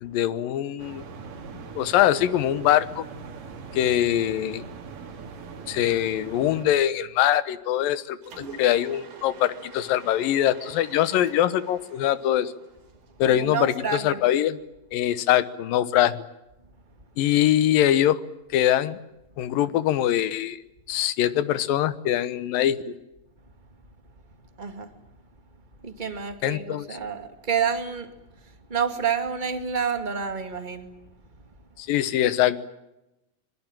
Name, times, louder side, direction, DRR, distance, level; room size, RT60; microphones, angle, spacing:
voice 1, 0.0-1.0 1.8-3.0 3.7-4.6 5.7-12.5 13.2-14.6 14.9-16.2 17.2-18.2 18.5-19.0 19.4-20.6 20.9-22.9 26.4-27.0 31.8-32.7, left 12 dB, 80° left, 15 dB, 2.8 m, -23 dB
sound 1, 0.8-6.7, right 5 dB, 70° right, 4.0 m, -41 dB
Mechanisms, 8.2-13.3, right 4 dB, 85° right, 5.2 m, -45 dB
voice 2, 13.2-14.2 24.6-24.9 25.8-28.1 28.4-30.9, right 6 dB, 15° right, 7 dB, 1.7 m, -29 dB
24.5 x 23.0 x 8.9 m, 0.95 s
omnidirectional pair, 4.0 m